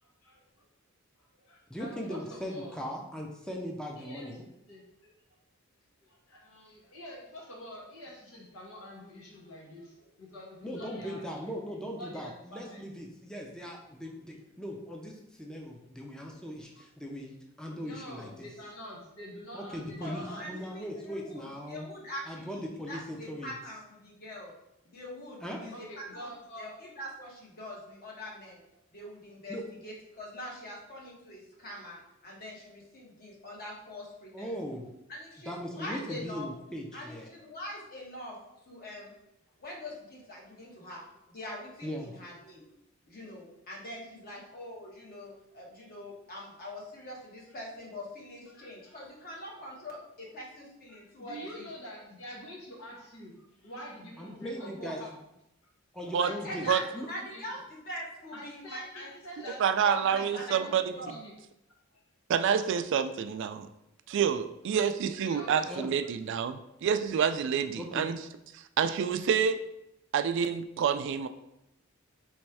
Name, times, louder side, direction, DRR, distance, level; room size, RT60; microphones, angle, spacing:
voice 1, 0.2-0.6 1.2-2.8 3.9-4.4 4.7-5.1 6.0-11.6 12.0-12.8 13.6-13.7 16.7-16.9 17.8-20.7 25.7-26.8 44.3-44.4 46.3-46.5 48.5-49.0 49.3-49.5 50.9-55.2 56.2-57.0 57.3-57.6 58.3-61.3 61.9-62.0 64.7-64.8 65.2-66.4, equal, 90° left, -3 dB, 1.4 m, -46 dB
voice 2, 1.7-4.4 10.6-18.5 19.5-21.9 22.3-23.5 25.4-25.6 29.5-29.6 34.3-34.9 35.4-37.3 41.8-42.1 54.2-55.0 55.9-56.7 56.9-57.1 65.7-65.9 67.8-68.1, equal, 5° left, 0 dB, 0.5 m, -39 dB
voice 3, 20.0-21.4 21.7-24.5 24.8-26.3 26.6-28.6 28.9-29.6 29.8-34.7 35.1-36.5 36.9-38.4 38.7-39.1 39.6-42.6 43.1-51.7 56.4-61.2, left 1 dB, 45° left, -3 dB, 1.2 m, -43 dB
voice 4, 59.6-60.9 62.3-63.7 64.1-68.2 68.8-69.7 70.1-71.3, right 7 dB, 60° right, 10 dB, 0.3 m, -28 dB
3.4 x 3.1 x 4.7 m, 0.84 s
head